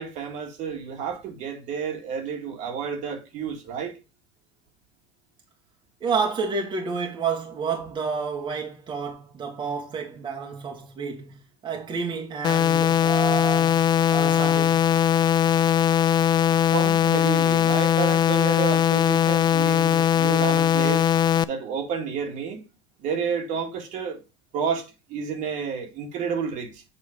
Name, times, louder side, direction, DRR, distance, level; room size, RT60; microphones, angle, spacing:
voice 1, 0.0-4.0 16.7-21.1 21.4-22.7 23.0-24.2 24.5-26.8, right 6 dB, 60° right, 1.9 m, -30 dB
voice 2, 6.0-13.8 14.1-14.8, right 5 dB, 30° right, 1.5 m, -30 dB
sound 1, 12.4-21.4, left 9 dB, 30° left, 0.4 m, -20 dB
7.5 x 3.2 x 4.9 m
supercardioid pair, 105°, 15 cm